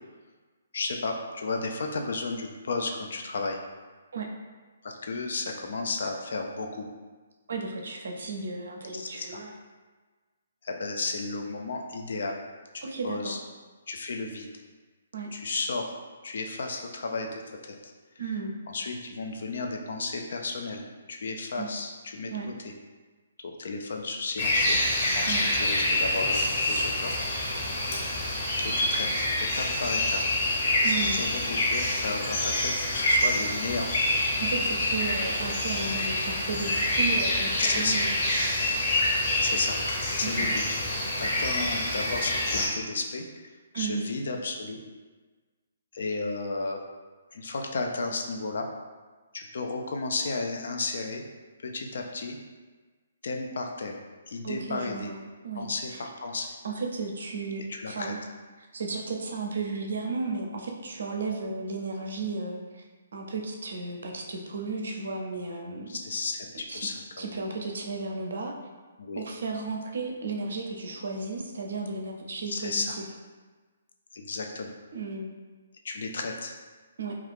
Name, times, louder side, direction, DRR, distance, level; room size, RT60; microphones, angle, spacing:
voice 1, 0.7-3.6 4.8-6.9 8.9-9.4 10.6-12.4 12.7-13.4 13.9-14.5 15.3-15.9 16.2-17.9 18.7-22.3 22.6-22.7 23.4-25.3 25.6-27.3 28.6-30.2 30.8-33.9 37.6-38.0 39.4-39.8 40.2-40.9 41.2-43.5 43.7-44.8 45.9-46.8 47.3-48.7 49.3-51.2 51.6-52.4 53.2-55.1 55.6-56.5 57.7-58.1 65.9-67.3 69.0-69.2 72.5-73.0 74.1-74.7 75.8-76.6, left 3 dB, 60° left, 2 dB, 0.4 m, -33 dB
voice 2, 7.5-9.5 12.8-13.4 15.1-15.3 18.2-18.5 21.6-21.7 22.3-22.5 25.2-25.4 30.8-31.2 34.4-38.1 40.3-40.5 43.7-44.0 54.4-55.2 55.4-56.0 56.6-58.2 58.6-62.8 63.1-65.9 66.7-66.9 67.2-68.5 69.2-73.1 74.9-75.3 77.0-77.1, right 4 dB, 65° right, 1 dB, 0.5 m, -34 dB
sound 1, 24.4-42.7, left 1 dB, 40° left, 0.9 m, -26 dB
2.3 x 2.3 x 3.4 m, 1.4 s
figure-of-eight pair, 135°, 0 cm